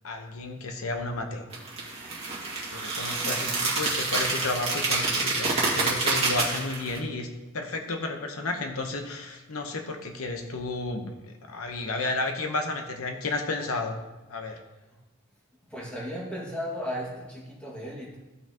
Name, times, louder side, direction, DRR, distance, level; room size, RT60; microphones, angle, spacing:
voice 1, 0.0-1.4 2.7-7.3 7.5-14.0 14.3-14.6, left 2 dB, 85° left, 4 dB, 1.0 m, -32 dB
sound 1, 1.5-7.0, right 3 dB, 30° right, 1.9 m, -27 dB
voice 2, 3.2-3.7 14.9-15.0 15.7-18.2, equal, 5° left, -4 dB, 1.8 m, -36 dB
15.0 x 6.0 x 2.9 m, 1.1 s
head